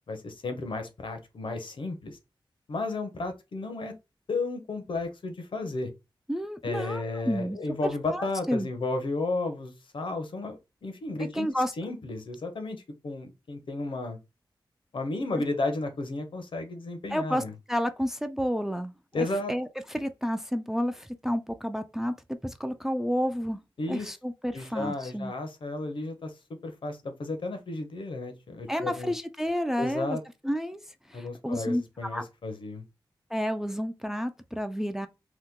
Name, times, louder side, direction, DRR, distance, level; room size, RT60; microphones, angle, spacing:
voice 1, 0.1-2.2 2.7-3.9 4.3-5.9 6.6-10.6 10.8-11.5 11.8-12.8 13.0-14.2 14.9-17.5 19.1-19.5 23.8-24.1 24.5-26.3 26.6-29.1 29.8-30.2 31.1-32.8, left 2 dB, 70° left, 0.7 m, -33 dB
voice 2, 6.3-7.6 8.1-8.7 11.3-11.7 17.1-17.4 17.7-23.6 23.9-25.3 28.7-30.2 30.4-30.8 31.1-32.2 33.3-35.1, equal, 5° right, 0.3 m, -30 dB
2.9 x 2.2 x 3.5 m
wide cardioid pair, 100°, 9 cm